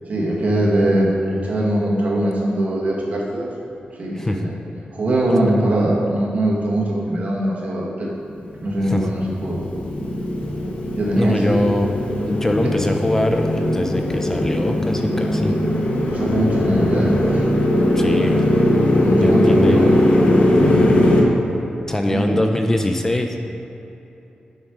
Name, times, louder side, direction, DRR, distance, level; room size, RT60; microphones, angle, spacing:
voice 1, 0.1-3.5 4.0-4.5 4.9-8.1 8.6-9.6 11.0-11.7 16.1-17.4 18.2-18.5 19.0-20.0 22.1-22.4, right 1 dB, 55° right, -4 dB, 1.3 m, -21 dB
Motorcycle, 8.6-21.2, left 1 dB, 55° left, 0.9 m, -19 dB
voice 2, 11.2-11.9 12.3-15.6 17.9-18.4 19.1-19.8 21.9-23.4, left 1 dB, 15° left, 4 dB, 0.3 m, -22 dB
7.2 x 5.0 x 4.7 m, 3.0 s
wide cardioid pair, 145°, 3 cm